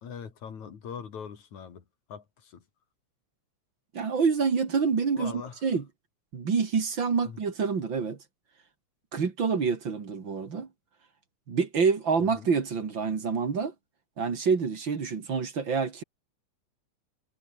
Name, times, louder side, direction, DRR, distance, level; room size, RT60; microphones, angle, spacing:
voice 1, 0.0-1.8 2.1-2.6 5.2-5.6 7.3-7.4 12.4-12.5, left 7 dB, 70° left, 4.2 m, -41 dB
voice 2, 3.9-5.9 6.3-8.2 9.1-10.7 11.5-13.7 14.2-16.0, right 5 dB, 40° right, 2.8 m, -27 dB
omnidirectional pair, 3.5 m